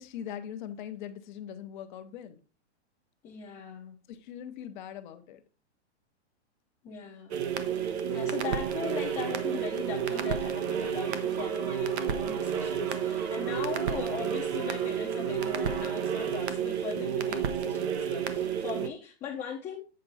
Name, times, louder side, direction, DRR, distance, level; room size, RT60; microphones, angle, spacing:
voice 1, 0.0-2.4 4.1-5.4, left 9 dB, 45° left, 0.9 m, -41 dB
voice 2, 3.2-4.0 6.8-7.4 8.1-19.8, left 7 dB, 20° left, 0.8 m, -39 dB
sound 1, 7.3-18.9, right 8 dB, 70° right, 1.0 m, -31 dB
sound 2, 8.1-16.4, right 4 dB, 20° right, 0.5 m, -45 dB
7.7 x 4.4 x 4.0 m
hypercardioid pair, 160°, 34 cm